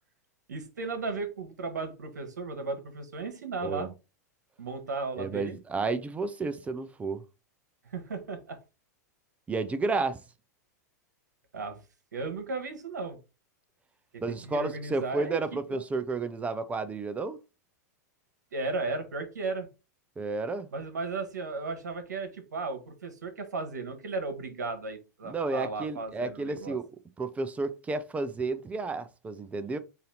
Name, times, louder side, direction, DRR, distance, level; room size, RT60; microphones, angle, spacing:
voice 1, 0.5-3.9 4.6-5.6 7.8-8.6 11.5-11.8 12.1-13.2 14.1-15.4 15.7-15.8 18.5-19.7 20.7-26.8, right 3 dB, 80° right, 1.2 m, -35 dB
voice 2, 5.2-7.2 9.5-10.2 14.2-17.4 20.2-20.7 25.2-26.9 27.2-29.8, right 3 dB, 15° right, 0.5 m, -31 dB
4.1 x 2.7 x 3.9 m
hypercardioid pair, 100°, 9 cm